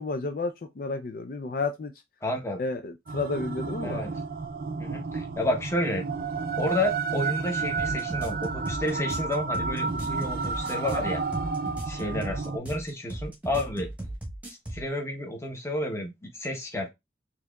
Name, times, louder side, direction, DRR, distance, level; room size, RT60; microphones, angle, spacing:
voice 1, 0.0-1.9 2.6-4.0 12.0-12.1, left 3 dB, 50° left, 0.4 m, -31 dB
voice 2, 2.2-2.6 3.8-4.2 4.8-6.0 6.6-11.2 11.9-13.9 14.5-16.9, left 1 dB, 15° left, 0.8 m, -31 dB
sound 1, 3.1-12.6, right 4 dB, 50° right, 0.4 m, -31 dB
sound 2, 7.8-14.9, right 1 dB, 10° right, 1.0 m, -37 dB
4.5 x 2.8 x 2.3 m
head